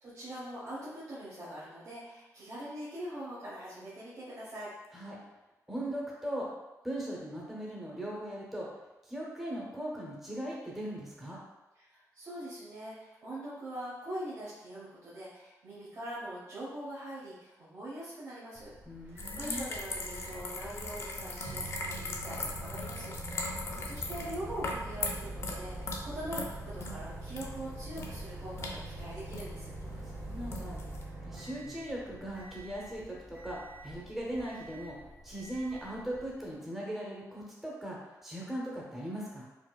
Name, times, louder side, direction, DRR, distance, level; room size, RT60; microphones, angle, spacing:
voice 1, 0.0-4.7 11.8-18.7 19.0-29.7, right 1 dB, 60° right, -10 dB, 1.0 m, -43 dB
voice 2, 5.7-6.5 6.8-8.7 9.0-11.4 18.9-19.7 29.9-30.8 31.2-35.0 35.2-39.5, right 1 dB, 5° right, -4 dB, 0.7 m, -39 dB
Microwave oven, 18.5-36.5, right 3 dB, 25° right, 1.0 m, -46 dB
sound 1, 19.2-31.0, left 2 dB, 45° left, 0.5 m, -40 dB
4.6 x 2.4 x 2.3 m, 1.0 s
wide cardioid pair, 135°, 6 cm